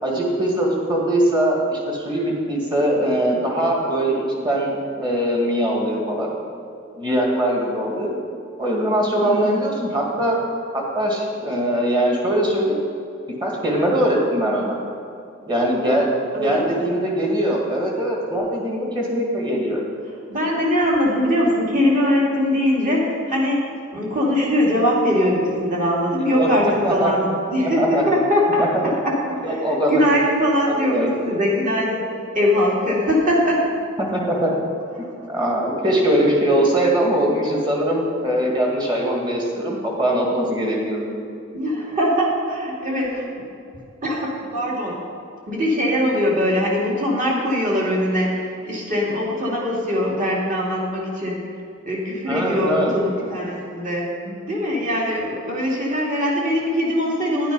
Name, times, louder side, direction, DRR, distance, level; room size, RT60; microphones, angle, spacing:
voice 1, 0.0-6.3 7.0-8.1 8.6-10.4 10.7-12.8 13.4-14.8 15.5-19.8 26.2-27.1 27.6-28.0 29.4-30.0 30.9-31.2 34.0-34.5 35.0-41.1 52.3-52.9 54.3-54.4, right 1 dB, 25° right, -2 dB, 2.1 m, -21 dB
voice 2, 9.2-9.6 16.3-16.8 20.3-23.6 23.9-28.7 29.0-29.1 29.5-32.0 32.3-33.7 35.0-35.4 41.5-43.3 44.0-45.0 45.5-51.4 51.8-54.1 54.4-57.5, equal, 40° right, -4 dB, 2.5 m, -21 dB
10.5 x 9.2 x 5.4 m, 2.6 s
head